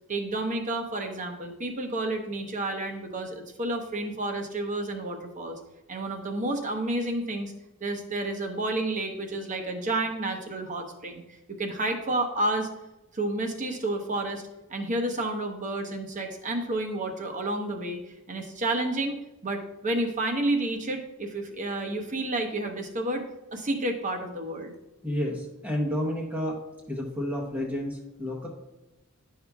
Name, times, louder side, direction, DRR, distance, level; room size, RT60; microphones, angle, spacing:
voice 1, 0.1-5.5 5.9-7.5 7.8-12.7 13.1-14.4 14.7-19.2 19.4-23.2 23.5-24.7, right 2 dB, 35° right, 4 dB, 1.0 m, -30 dB
voice 2, 25.0-26.6 26.9-28.5, equal, 5° right, -4 dB, 0.8 m, -30 dB
11.0 x 5.6 x 2.3 m, 1.0 s
head